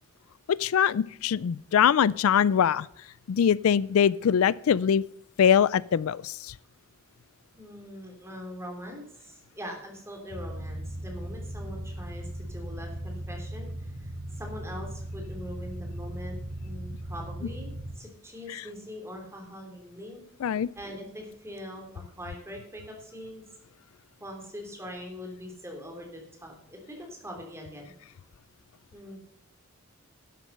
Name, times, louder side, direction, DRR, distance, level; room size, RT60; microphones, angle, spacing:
voice 1, 0.5-2.9 3.3-5.0 5.4-6.5 20.4-20.7, left 8 dB, 75° left, 21 dB, 0.4 m, -23 dB
voice 2, 7.6-16.4 16.6-20.2 20.7-23.4 24.2-27.9 28.9-29.2, equal, 10° right, 1 dB, 3.0 m, -42 dB
sound 1, 10.3-17.9, right 1 dB, 80° right, 4.7 m, -38 dB
12.0 x 7.6 x 6.5 m, 0.73 s
head